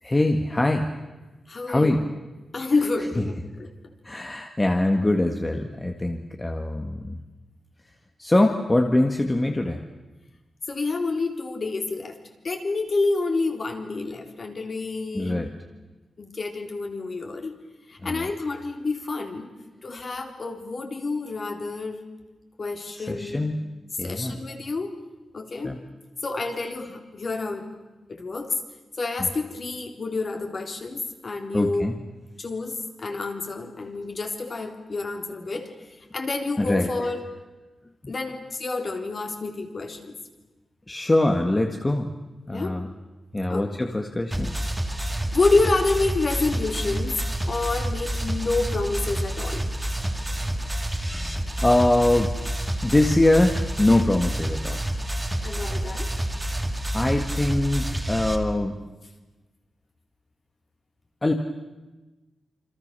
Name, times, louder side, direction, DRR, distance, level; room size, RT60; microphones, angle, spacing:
voice 1, 0.0-0.9 1.7-2.0 4.0-7.2 8.2-9.8 15.1-15.5 18.0-18.3 23.0-23.6 24.0-24.4 25.6-25.8 29.2-29.3 31.5-31.9 36.6-36.9 38.0-38.1 40.9-42.1 42.5-42.9 43.3-44.5 51.6-52.4 52.8-54.8 56.9-58.7 61.2-61.3, left 1 dB, 15° left, 4 dB, 1.8 m, -23 dB
voice 2, 1.5-1.9 2.5-3.7 10.7-12.2 12.4-15.4 16.2-17.5 17.9-19.5 19.8-22.0 22.6-23.4 24.0-25.0 25.3-25.7 26.2-27.7 28.1-28.6 29.0-31.8 32.4-35.7 36.0-37.3 38.1-40.2 42.5-42.8 43.5-43.6 45.3-49.7 55.4-56.1, left 3 dB, 40° left, 4 dB, 3.8 m, -28 dB
sound 1, 44.3-58.4, right 1 dB, 10° right, 2.5 m, -28 dB
28.0 x 26.5 x 6.9 m, 1.1 s
wide cardioid pair, 135°, 0 cm